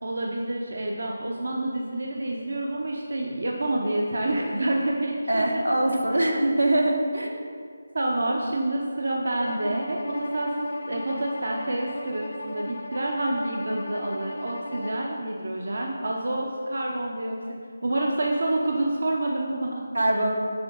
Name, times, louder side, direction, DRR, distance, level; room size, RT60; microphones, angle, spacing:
voice 1, 0.0-5.6 5.9-6.0 7.9-17.4 17.8-19.8 20.1-20.2, right 1 dB, 65° right, -1 dB, 0.7 m, -28 dB
voice 2, 5.3-7.4 19.9-20.3, right 1 dB, 85° right, 1 dB, 1.0 m, -23 dB
Bowed string instrument, 9.4-15.1, left 1 dB, 60° left, 0.8 m, -36 dB
6.9 x 4.6 x 5.3 m, 2.1 s
figure-of-eight pair, 155°, 0 cm